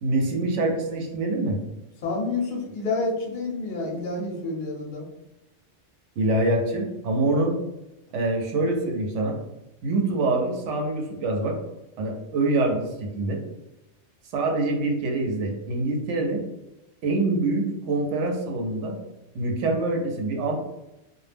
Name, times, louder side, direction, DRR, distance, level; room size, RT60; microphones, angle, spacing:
voice 1, 0.0-1.6 6.2-7.5 8.1-9.4 9.8-11.6 12.0-13.4 14.3-16.4 17.0-19.0 19.3-20.6, right 2 dB, 75° right, 1 dB, 0.9 m, -25 dB
voice 2, 2.0-5.0, left 3 dB, 50° left, -2 dB, 0.7 m, -29 dB
2.2 x 2.0 x 3.2 m, 0.93 s
omnidirectional pair, 1.3 m